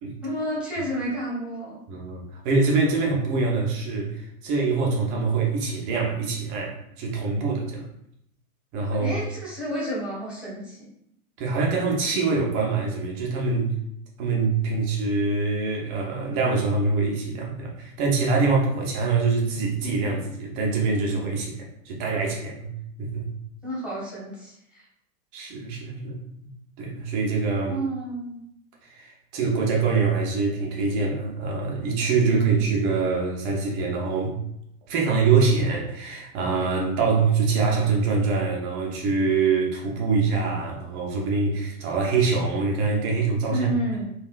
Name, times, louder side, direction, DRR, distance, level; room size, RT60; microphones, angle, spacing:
voice 1, 0.2-1.8 8.9-10.9 23.6-24.8 27.7-28.4 32.2-32.8 43.5-44.1, equal, 5° right, -8 dB, 1.0 m, -31 dB
voice 2, 1.9-7.9 8.7-9.2 11.4-13.7 14.2-23.3 25.3-26.2 26.8-27.8 28.8-34.4 34.9-43.7, right 4 dB, 20° right, -1 dB, 0.5 m, -24 dB
3.5 x 2.3 x 2.4 m, 0.74 s
figure-of-eight pair, 105°, 43 cm